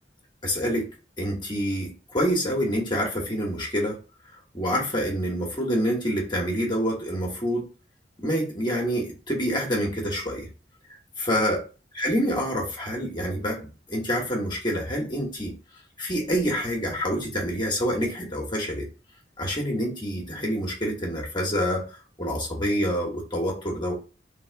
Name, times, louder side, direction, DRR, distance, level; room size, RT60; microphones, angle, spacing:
voice 1, 0.4-0.9 1.2-4.0 4.5-7.7 8.2-10.5 11.2-11.6 12.0-15.5 16.0-18.9 19.4-21.9 22.2-23.9, equal, 25° left, -1 dB, 1.2 m, -27 dB
3.6 x 3.1 x 4.5 m, 0.34 s
head